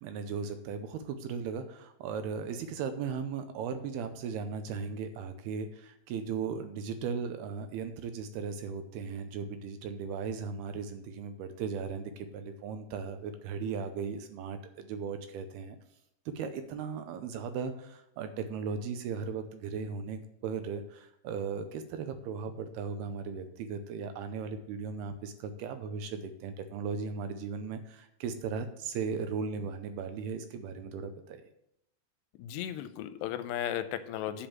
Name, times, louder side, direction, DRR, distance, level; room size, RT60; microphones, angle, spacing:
voice 1, 0.0-15.8 16.4-31.4, right 5 dB, 80° right, 8 dB, 2.5 m, -37 dB
voice 2, 32.4-34.5, left 11 dB, 85° left, 10 dB, 2.7 m, -35 dB
10.5 x 5.2 x 7.3 m, 0.79 s
omnidirectional pair, 4.9 m